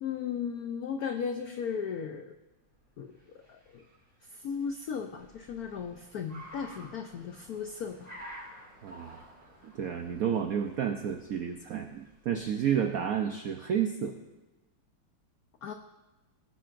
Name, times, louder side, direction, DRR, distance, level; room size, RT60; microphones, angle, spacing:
voice 1, 0.0-2.3 3.0-3.1 3.5-3.8 4.3-8.1 15.6-15.7, left 6 dB, 85° left, 6 dB, 0.8 m, -36 dB
Car, 2.7-13.0, equal, 30° right, 4.2 m, -52 dB
voice 2, 8.8-9.3 9.6-14.2, right 8 dB, 80° right, 5 dB, 0.7 m, -31 dB
18.0 x 10.0 x 2.6 m, 1.1 s
omnidirectional pair, 2.3 m